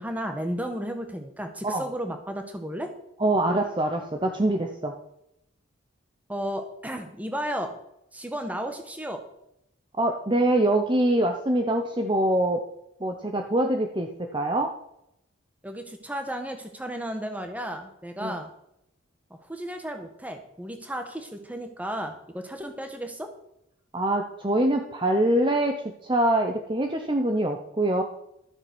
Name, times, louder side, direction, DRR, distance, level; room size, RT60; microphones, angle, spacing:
voice 1, 0.0-2.9 6.3-7.7 8.1-9.2 15.6-18.5 19.4-23.3, equal, 5° right, 6 dB, 1.4 m, -33 dB
voice 2, 3.2-4.9 10.0-12.6 13.0-14.7 18.2-18.4 23.9-28.0, right 1 dB, 25° right, 4 dB, 0.9 m, -24 dB
13.0 x 7.7 x 6.2 m, 0.79 s
head